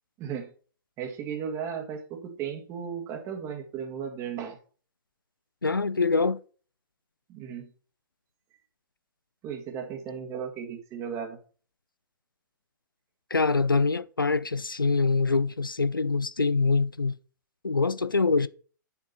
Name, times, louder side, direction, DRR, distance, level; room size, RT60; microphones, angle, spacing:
voice 1, 0.2-0.5 1.0-4.6 7.3-7.7 9.4-11.4, right 7 dB, 25° right, 2.0 m, -35 dB
voice 2, 5.6-6.4 13.3-17.1 17.6-18.5, left 4 dB, 80° left, 0.5 m, -24 dB
9.5 x 7.2 x 4.3 m
figure-of-eight pair, 115°, 11 cm